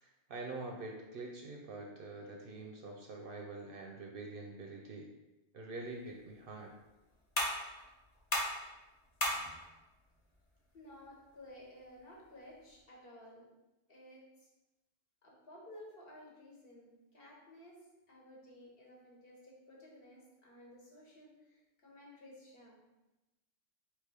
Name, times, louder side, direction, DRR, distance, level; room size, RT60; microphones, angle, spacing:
voice 1, 0.0-5.1 5.5-6.7, right 2 dB, 60° right, 1 dB, 0.7 m, -45 dB
sound 1, 5.8-12.8, left 1 dB, 40° left, 0.9 m, -41 dB
voice 2, 10.7-13.5 13.9-14.5 15.2-22.7, left 1 dB, 55° left, -4 dB, 1.3 m, -55 dB
3.4 x 3.0 x 4.7 m, 1.0 s
omnidirectional pair, 1.2 m